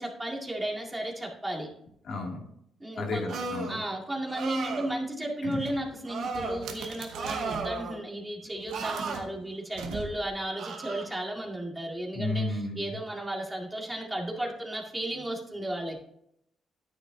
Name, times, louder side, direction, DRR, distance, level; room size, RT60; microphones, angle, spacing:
voice 1, 0.0-1.7 2.8-3.2 3.7-16.0, right 1 dB, 10° right, -1 dB, 2.1 m, -34 dB
voice 2, 2.0-2.5 3.0-3.8 5.4-5.7 12.1-13.0, left 2 dB, 65° left, 0 dB, 2.4 m, -32 dB
sound 1, 3.3-3.8 4.3-4.9 6.1-6.6 7.1-8.0 8.7-9.2 10.6-11.1, right 4 dB, 70° right, 1.9 m, -34 dB
sound 2, 5.5-7.8 8.5-10.5, right 4 dB, 90° right, 1.3 m, -43 dB
9.8 x 9.7 x 2.7 m, 0.74 s
cardioid pair, 90°, 0 cm